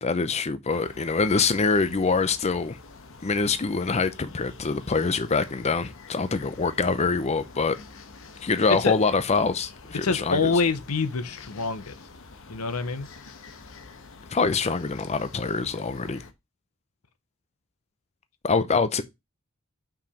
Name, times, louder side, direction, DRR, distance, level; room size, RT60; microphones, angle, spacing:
voice 1, 0.0-2.8 3.2-7.8 8.4-10.5 14.3-16.2 18.4-19.0, left 4 dB, 30° left, 0.6 m, -25 dB
sound 1, 0.7-16.3, left 3 dB, 65° left, 1.1 m, -47 dB
voice 2, 10.0-11.9 12.5-13.1, left 4 dB, 80° left, 0.9 m, -26 dB
5.9 x 4.9 x 5.0 m
head